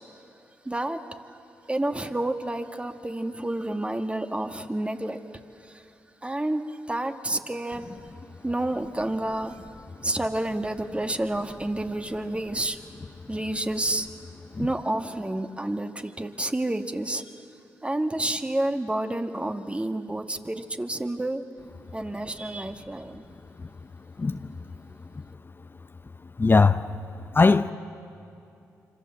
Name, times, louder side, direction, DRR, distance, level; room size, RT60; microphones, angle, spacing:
voice 1, 0.7-1.0 1.7-5.2 5.6-5.8 6.2-7.9 8.4-9.6 10.0-12.8 13.3-14.1 14.6-17.3 17.8-21.4 21.9-23.2, right 1 dB, 15° right, 6 dB, 1.9 m, -29 dB
voice 2, 24.2-24.5 26.4-26.9 27.3-27.7, left 4 dB, 35° left, 10 dB, 0.7 m, -19 dB
26.5 x 25.5 x 7.9 m, 2.7 s
supercardioid pair, 45°, 7 cm